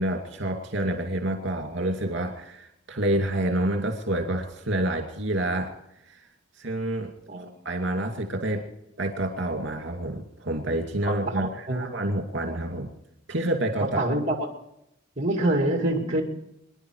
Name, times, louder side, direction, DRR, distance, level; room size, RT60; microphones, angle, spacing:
voice 1, 0.0-5.7 6.6-7.1 7.6-8.7 9.0-12.9 13.3-14.0, right 1 dB, 65° right, 3 dB, 2.5 m, -28 dB
voice 2, 11.0-11.9 12.4-12.6 13.8-14.4 15.2-16.2, right 1 dB, 35° right, 2 dB, 2.4 m, -26 dB
25.0 x 11.0 x 4.8 m, 0.81 s
head